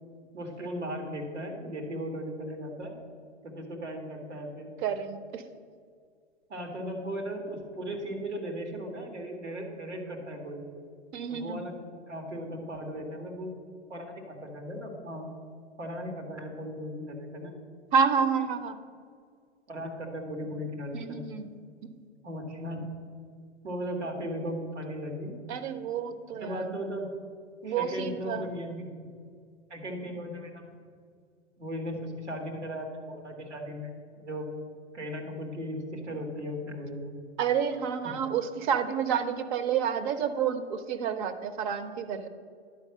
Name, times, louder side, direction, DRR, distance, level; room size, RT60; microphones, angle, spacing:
voice 1, 0.3-3.0 3.4-4.7 6.5-10.6 11.3-11.8 12.1-13.6 13.9-15.3 15.8-17.6 19.7-21.3 22.2-22.9 23.6-25.4 26.3-27.1 27.6-29.1 29.7-30.8 31.6-34.4 34.9-37.2 38.0-38.1, equal, 85° right, 2 dB, 1.9 m, -37 dB
voice 2, 4.8-5.4 11.1-11.6 17.9-18.8 20.9-21.5 25.5-26.8 27.6-28.5 37.4-42.3, right 7 dB, 45° right, 11 dB, 0.8 m, -29 dB
10.5 x 4.8 x 6.4 m, 2.1 s
figure-of-eight pair, 105°, 34 cm